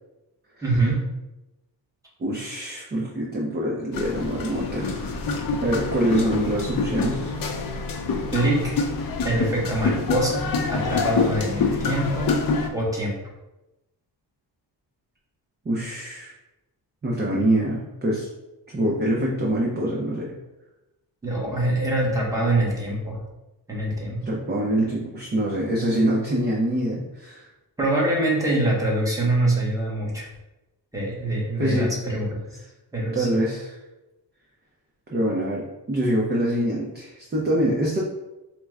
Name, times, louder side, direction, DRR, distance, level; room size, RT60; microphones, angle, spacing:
voice 1, 0.6-1.0 8.3-8.8 9.2-12.3 12.7-13.1 21.2-23.2 23.7-24.2 27.8-30.3 30.9-32.4 32.9-33.3, right 1 dB, 10° right, -4 dB, 1.0 m, -24 dB
voice 2, 2.2-5.2 5.6-7.4 7.7-7.8 15.7-16.3 17.0-18.3 18.7-20.3 24.2-27.5 31.6-31.9 33.1-33.8 35.1-38.0, right 1 dB, 25° right, -3 dB, 0.5 m, -25 dB
sound 1, 3.9-12.7, left 4 dB, 50° left, 0.5 m, -26 dB
4.5 x 2.1 x 3.5 m, 0.99 s
wide cardioid pair, 125°, 44 cm